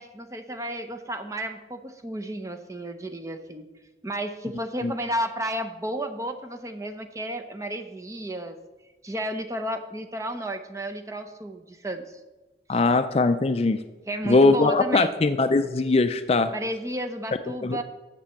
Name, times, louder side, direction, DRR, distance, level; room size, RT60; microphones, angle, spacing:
voice 1, 0.0-3.7 4.0-8.6 9.0-12.2 12.7-12.8 14.1-15.1 16.5-17.8, right 1 dB, 20° right, 7 dB, 0.7 m, -32 dB
voice 2, 12.7-13.8 14.2-16.5 17.6-17.8, left 3 dB, 35° left, 10 dB, 0.4 m, -21 dB
7.3 x 6.8 x 7.6 m, 1.1 s
head